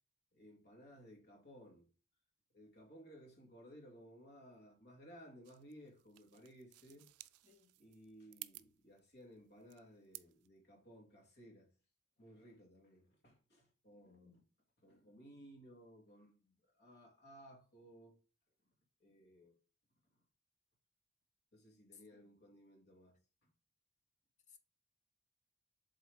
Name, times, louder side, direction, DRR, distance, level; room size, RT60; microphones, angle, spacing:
voice 1, 0.3-1.9 2.5-7.1 7.8-11.7 12.2-14.4 14.8-18.2 19.0-19.5 21.5-23.2 23.4-23.5, equal, 50° left, 2.3 m, -59 dB
sound 1, 5.4-10.5, right 19 dB, 70° right, 0.4 m, -56 dB
voice 2, 14.1-14.4 21.9-22.3 24.5-24.6, left 6 dB, 35° left, 0.8 m, -63 dB
7.8 x 3.7 x 3.5 m
head